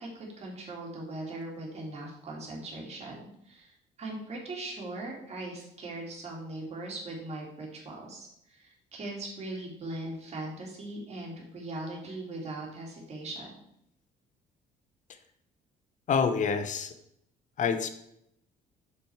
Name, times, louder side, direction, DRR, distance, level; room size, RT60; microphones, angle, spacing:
voice 1, 0.0-13.5, right 2 dB, 40° right, -3 dB, 2.9 m, -40 dB
voice 2, 16.1-16.9 17.6-17.9, left 6 dB, 45° left, 10 dB, 0.9 m, -27 dB
6.7 x 5.9 x 4.8 m, 0.76 s
cardioid pair, 110°, 17 cm